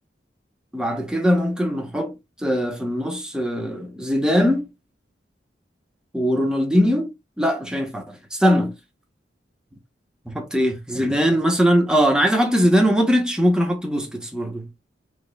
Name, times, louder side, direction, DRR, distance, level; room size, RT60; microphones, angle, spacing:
voice 1, 0.7-4.7 6.1-7.1 7.4-8.7 10.3-14.7, equal, 5° right, 1.0 m, -21 dB
6.2 x 3.2 x 2.3 m
head